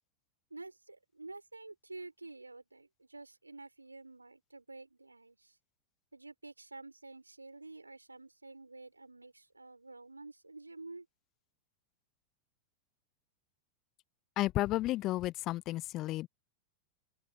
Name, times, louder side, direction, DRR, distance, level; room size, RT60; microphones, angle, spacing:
voice 1, 0.5-5.6 6.1-11.1, right 3 dB, 80° right, 5.2 m, -50 dB
voice 2, 14.4-16.3, left 16 dB, 35° left, 1.3 m, -32 dB
open air
figure-of-eight pair, 90°, 0 cm